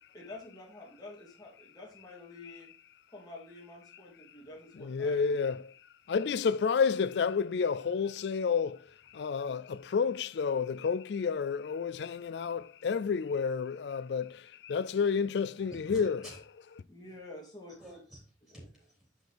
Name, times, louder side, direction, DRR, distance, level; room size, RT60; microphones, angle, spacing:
voice 1, 0.1-2.7 3.1-5.4 16.9-17.7 18.5-18.7, left 2 dB, 20° left, 2.8 m, -48 dB
voice 2, 4.8-5.7 6.1-8.9 9.1-16.2, left 5 dB, 65° left, 0.4 m, -30 dB
voice 3, 15.7-16.4 17.8-19.3, equal, 5° right, 3.8 m, -50 dB
6.0 x 5.2 x 4.6 m
head